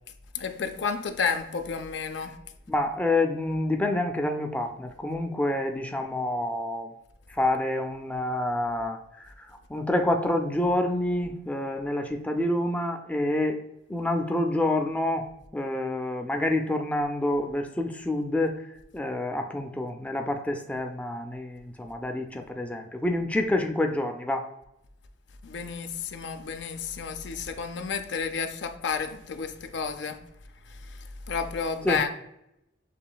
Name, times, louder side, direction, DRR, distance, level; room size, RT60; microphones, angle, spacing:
voice 1, 0.3-2.4 25.4-30.2 30.7-32.1, left 5 dB, 70° left, 0.5 m, -31 dB
voice 2, 2.7-6.9 7.4-9.0 9.4-13.6 13.9-15.3 15.5-18.6 18.9-24.5 31.8-32.0, left 1 dB, 10° left, 0.3 m, -27 dB
6.8 x 3.1 x 2.2 m
head